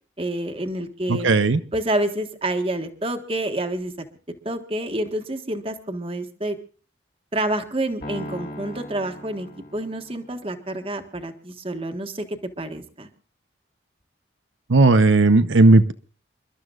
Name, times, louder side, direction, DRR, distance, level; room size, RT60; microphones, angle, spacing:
voice 1, 0.2-1.3 1.7-3.9 4.4-6.6 7.3-13.1, right 1 dB, 30° right, 6 dB, 1.5 m, -28 dB
voice 2, 1.1-1.6 14.7-15.9, right 2 dB, 80° right, 9 dB, 0.8 m, -15 dB
Piano, 8.0-10.4, equal, 45° left, 2.7 m, -38 dB
29.0 x 12.5 x 2.5 m, 0.40 s
head